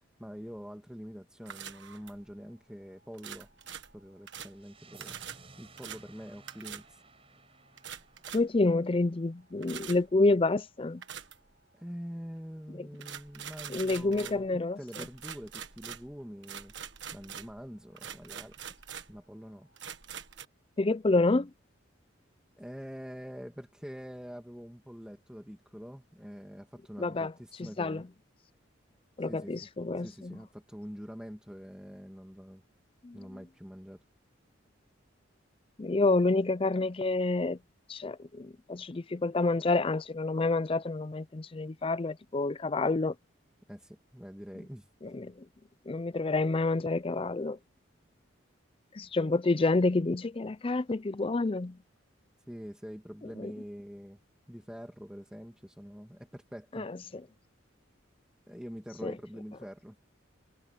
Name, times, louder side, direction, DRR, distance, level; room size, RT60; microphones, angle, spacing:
voice 1, 0.2-3.5 3.9-5.2 5.6-7.0 11.7-16.7 17.1-18.6 19.1-19.7 22.6-28.1 29.2-29.6 30.0-32.6 33.1-34.0 43.7-44.9 52.5-54.2 54.5-56.9 58.5-59.9, equal, 5° right, 2.5 m, -45 dB
sound 1, 1.5-2.3 3.1-4.6 5.0-5.4 5.8-6.0 6.5-6.9 7.8-8.6 9.6-10.1 11.0-11.5 13.0-14.5 14.9-17.7 18.0-19.2 19.8-20.5, right 8 dB, 65° right, 1.5 m, -44 dB
sound 2, 4.5-9.5, right 3 dB, 30° right, 6.9 m, -57 dB
voice 2, 8.3-11.0 12.8-12.9 13.7-14.8 20.8-21.5 27.0-27.3 27.8-28.0 29.2-30.4 33.0-33.2 35.8-37.6 37.9-43.1 45.0-45.3 45.9-47.6 48.9-51.8 53.4-53.5 56.7-56.9 59.0-59.1, left 3 dB, 25° left, 0.5 m, -28 dB
head